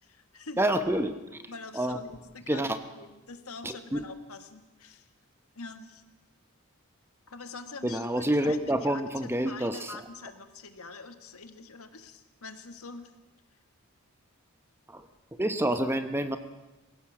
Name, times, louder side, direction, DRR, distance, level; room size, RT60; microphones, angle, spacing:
voice 1, 0.0-0.6 1.5-2.6 2.9-5.1 5.5-6.0 7.3-8.1 8.4-13.1, left 4 dB, 75° left, 8 dB, 1.7 m, -45 dB
voice 2, 0.6-1.2 1.7-2.0 2.5-2.8 3.6-4.0 7.8-10.0 14.9-15.1 15.4-16.4, right 1 dB, 10° right, 9 dB, 0.9 m, -28 dB
21.5 x 16.5 x 7.3 m, 1.1 s
head